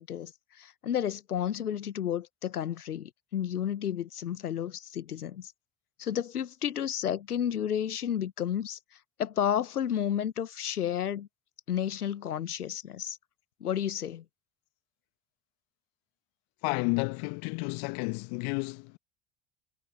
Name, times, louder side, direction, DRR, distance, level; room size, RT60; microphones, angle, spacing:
voice 1, 0.0-5.5 6.0-8.8 9.2-11.3 11.7-13.2 13.6-14.2, left 9 dB, 85° left, 1.2 m, -32 dB
voice 2, 16.6-19.0, left 34 dB, 60° left, 1.3 m, -31 dB
figure-of-eight pair, 60°, 44 cm